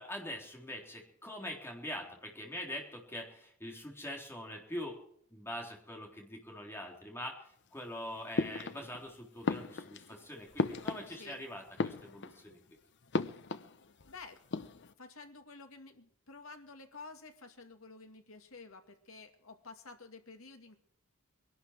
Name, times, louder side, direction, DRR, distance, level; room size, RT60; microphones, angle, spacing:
voice 1, 0.0-5.0 5.3-12.6, left 1 dB, 10° left, 0 dB, 3.8 m, -43 dB
sound 1, 8.4-9.1 9.4-11.4 11.7-12.5 13.1-14.1 14.4-14.9, left 3 dB, 55° left, 0.8 m, -36 dB
voice 2, 11.1-11.4 14.0-14.4 15.0-20.8, left 3 dB, 70° left, 5 dB, 2.2 m, -51 dB
22.5 x 11.5 x 4.8 m, 0.67 s
head